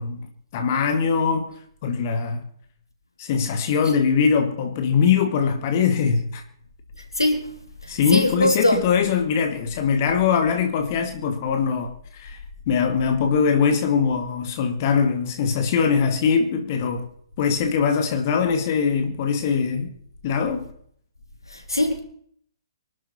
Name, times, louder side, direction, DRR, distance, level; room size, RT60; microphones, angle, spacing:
voice 1, 0.0-2.4 3.2-6.4 7.9-17.1 17.4-19.9 20.2-20.7, left 6 dB, 40° left, 2.1 m, -22 dB
voice 2, 7.2-8.8 21.5-22.0, left 1 dB, 80° left, 3.8 m, -22 dB
24.5 x 12.5 x 4.4 m
figure-of-eight pair, 125°, 2 cm